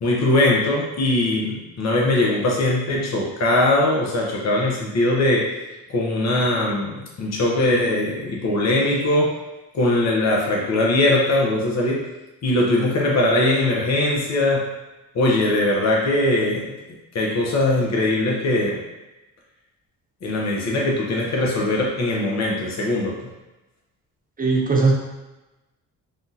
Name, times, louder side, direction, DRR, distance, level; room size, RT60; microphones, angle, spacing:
voice 1, 0.0-5.5 5.9-9.4 9.7-12.1 12.4-14.7 15.1-16.7 17.1-18.8 20.2-23.2, left 1 dB, 45° left, -3 dB, 0.8 m, -21 dB
voice 2, 24.4-24.9, right 4 dB, 25° right, -2 dB, 0.9 m, -18 dB
3.5 x 2.4 x 2.8 m, 1.0 s
supercardioid pair, 65°, 36 cm